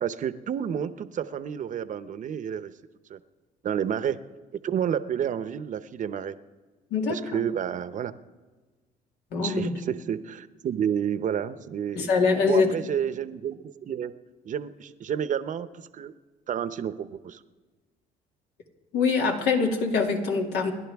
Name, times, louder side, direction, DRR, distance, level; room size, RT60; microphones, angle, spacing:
voice 1, 0.0-2.7 3.1-3.2 3.6-4.2 4.6-6.4 7.1-8.1 9.4-12.1 12.5-14.1 14.4-15.7 15.9-16.1 16.5-17.4, right 8 dB, 50° right, 12 dB, 0.8 m, -30 dB
voice 2, 9.3-9.7 12.0-12.7 18.9-20.7, left 4 dB, 80° left, 2 dB, 2.4 m, -23 dB
29.0 x 11.5 x 3.5 m, 1.3 s
cardioid pair, 110°, 17 cm